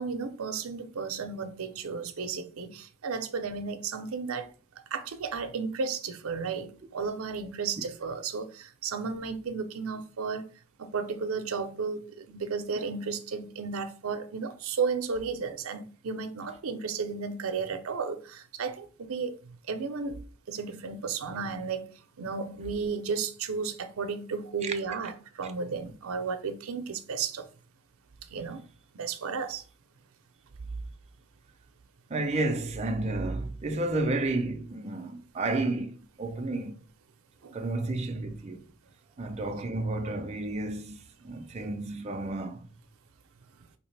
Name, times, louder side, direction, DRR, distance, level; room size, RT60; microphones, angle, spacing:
voice 1, 0.0-4.5 4.9-10.4 10.8-19.4 19.7-20.2 20.5-21.9 22.2-27.4 28.3-28.6 28.9-29.6 37.4-37.6, right 5 dB, 85° right, 0.6 m, -33 dB
voice 2, 32.1-36.8 37.5-38.6 39.2-42.7, right 2 dB, 30° right, 0.5 m, -31 dB
4.9 x 2.8 x 3.2 m
head